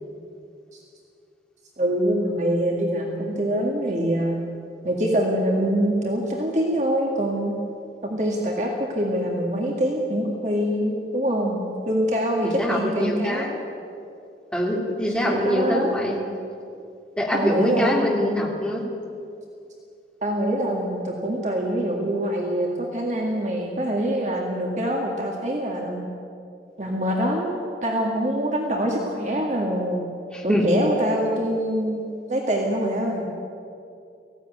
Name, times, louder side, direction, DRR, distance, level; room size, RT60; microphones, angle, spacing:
voice 1, 1.8-4.4 4.8-7.5 8.0-11.6 11.9-13.5 15.2-16.0 17.3-18.0 20.2-26.0 26.8-30.0 30.4-33.2, equal, 40° right, -1 dB, 2.1 m, -24 dB
voice 2, 12.4-13.6 14.5-16.2 17.2-18.8 30.3-30.7, left 1 dB, 5° left, -2 dB, 2.7 m, -24 dB
18.5 x 16.0 x 9.4 m, 2.5 s
head